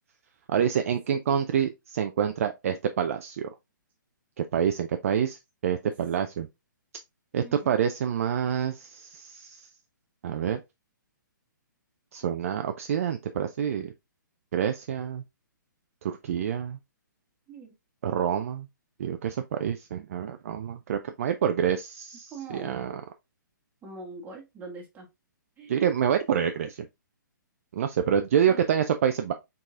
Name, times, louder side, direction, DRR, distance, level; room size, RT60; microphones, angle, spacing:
voice 1, 0.5-3.5 4.4-6.5 7.3-9.7 10.2-10.6 12.1-13.9 14.5-15.2 16.0-16.8 18.0-18.7 19.0-23.0 25.7-26.9 27.7-29.3, right 8 dB, 45° right, 0.4 m, -27 dB
voice 2, 7.4-7.8 17.5-17.7 22.3-22.8 23.8-25.1 25.6-25.8 28.5-28.6, right 3 dB, 15° right, 1.5 m, -42 dB
4.5 x 4.1 x 2.3 m
figure-of-eight pair, 125°, 11 cm